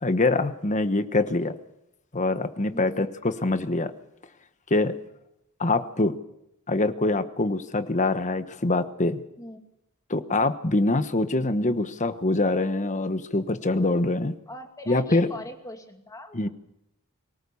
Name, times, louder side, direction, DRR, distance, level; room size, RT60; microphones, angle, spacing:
voice 1, 0.0-1.6 2.1-3.9 4.7-4.9 5.6-6.1 6.7-9.2 10.1-14.4 14.9-15.3 16.3-16.5, left 2 dB, 35° left, 11 dB, 1.2 m, -24 dB
voice 2, 2.7-3.1 9.4-9.6 14.5-16.4, left 1 dB, 15° left, 4 dB, 2.5 m, -40 dB
24.0 x 18.0 x 7.1 m, 0.84 s
head